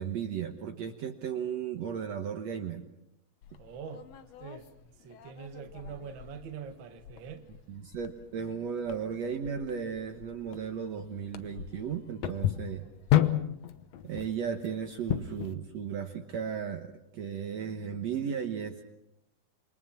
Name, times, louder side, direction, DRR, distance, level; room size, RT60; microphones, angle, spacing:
voice 1, 0.0-2.8 7.7-12.8 14.0-18.8, right 7 dB, 60° right, 2.1 m, -35 dB
sound 1, 3.4-15.5, left 12 dB, 65° left, 1.9 m, -34 dB
voice 2, 3.6-4.1 4.4-7.5, right 7 dB, 45° right, 1.8 m, -44 dB
28.5 x 23.5 x 5.9 m
omnidirectional pair, 3.9 m